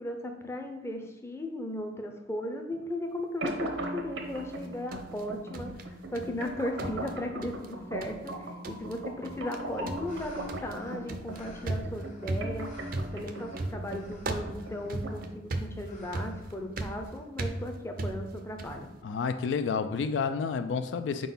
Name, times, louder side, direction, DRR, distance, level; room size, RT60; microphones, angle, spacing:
voice 1, 0.0-12.7 13.1-18.9, left 1 dB, 15° left, 4 dB, 0.6 m, -37 dB
sound 1, 3.4-15.4, right 1 dB, 85° right, 0.8 m, -40 dB
sound 2, 4.5-6.5 6.8-7.7 8.0-8.4 8.6-9.0 9.2-9.6 9.9-18.9, right 2 dB, 50° right, 0.5 m, -37 dB
sound 3, 9.7-15.3 15.8-17.2, left 1 dB, 40° left, 1.1 m, -53 dB
voice 2, 19.0-21.3, left 5 dB, 70° left, 9 dB, 0.3 m, -30 dB
4.6 x 3.8 x 5.4 m, 1.0 s
head